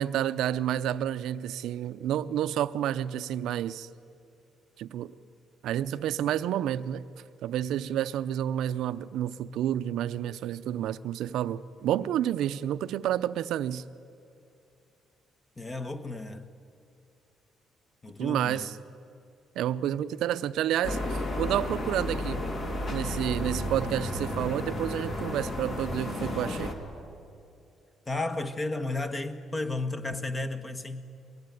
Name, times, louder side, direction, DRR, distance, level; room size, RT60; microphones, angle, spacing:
voice 1, 0.0-3.9 4.8-5.1 5.6-7.0 7.4-13.8 18.2-18.8 19.6-22.4 22.9-26.7, right 11 dB, 80° right, 0.6 m, -30 dB
voice 2, 15.6-16.5 18.0-18.7 28.1-31.1, left 2 dB, 25° left, 1.3 m, -33 dB
sound 1, 20.8-26.7, left 1 dB, 45° left, 2.9 m, -32 dB
23.0 x 18.0 x 9.3 m
cardioid pair, 110°, 0 cm